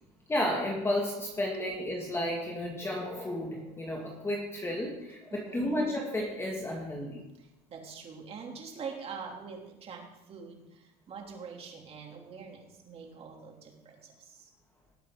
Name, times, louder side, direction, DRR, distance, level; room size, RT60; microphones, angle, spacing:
voice 1, 0.3-7.2, left 1 dB, 15° left, -1 dB, 2.4 m, -32 dB
voice 2, 5.3-5.7 7.4-14.5, right 5 dB, 35° right, 1 dB, 3.2 m, -44 dB
19.5 x 8.5 x 3.9 m, 0.92 s
supercardioid pair, 115°, 17 cm